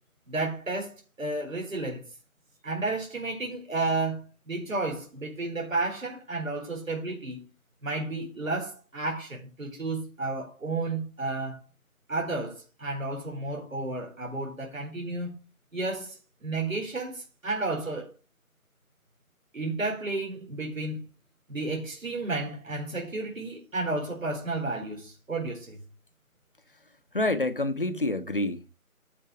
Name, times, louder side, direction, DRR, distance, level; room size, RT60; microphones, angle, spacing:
voice 1, 0.3-2.0 2.6-7.4 7.8-11.6 12.1-15.3 15.7-18.1 19.5-21.0 21.5-25.8, right 2 dB, 65° right, 4.5 m, -32 dB
voice 2, 27.1-28.7, left 2 dB, 40° left, 0.8 m, -27 dB
13.5 x 4.5 x 4.9 m
figure-of-eight pair, 170°, 43 cm